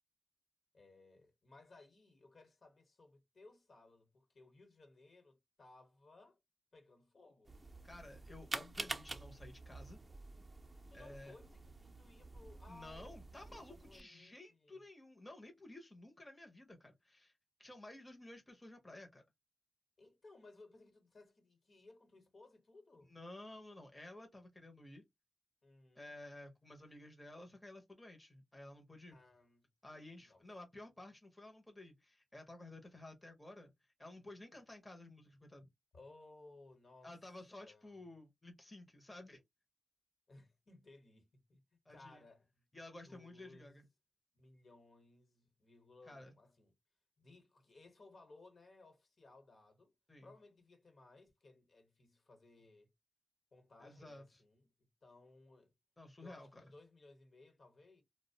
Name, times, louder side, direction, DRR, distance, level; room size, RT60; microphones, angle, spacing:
voice 1, 0.7-6.4 6.7-7.6 10.9-14.8 20.0-23.1 25.6-26.1 29.1-30.4 35.9-37.2 37.6-38.1 40.3-41.6 41.9-42.6 43.1-43.8 44.3-46.7 47.2-49.9 50.2-52.9 53.5-54.7 55.0-55.7 56.2-58.0, left 2 dB, 60° left, 1.0 m, -61 dB
sound 1, 7.5-14.0, right 2 dB, 30° right, 0.5 m, -48 dB
voice 2, 7.8-10.0 10.9-11.3 12.7-17.3 17.6-19.2 23.1-25.0 25.9-29.2 29.8-33.7 34.0-35.7 37.0-39.4 41.9-42.2 42.7-43.8 46.1-46.3 50.1-50.3 53.8-54.2 56.0-56.6, left 1 dB, 20° left, 0.6 m, -53 dB
2.4 x 2.0 x 2.7 m
wide cardioid pair, 80°, 0 cm